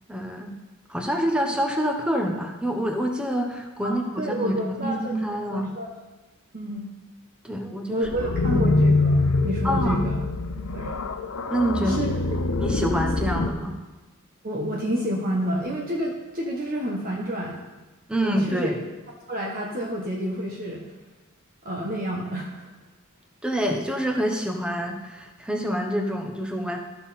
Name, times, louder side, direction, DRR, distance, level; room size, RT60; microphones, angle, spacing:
voice 1, 0.1-0.5 0.9-5.7 7.4-8.1 8.4-8.7 9.6-10.0 11.5-12.3 12.6-13.8 18.1-18.8 23.4-26.8, equal, 5° right, 2 dB, 1.0 m, -27 dB
voice 2, 3.8-5.1 5.5-5.9 6.5-6.9 7.9-10.2 10.7-11.0 11.8-12.2 14.4-17.6 18.2-18.7 19.3-20.8 21.6-22.7, right 1 dB, 40° right, -2 dB, 1.1 m, -29 dB
sound 1, 8.0-13.5, left 2 dB, 70° left, 0.7 m, -24 dB
14.0 x 5.6 x 4.2 m, 1.2 s
head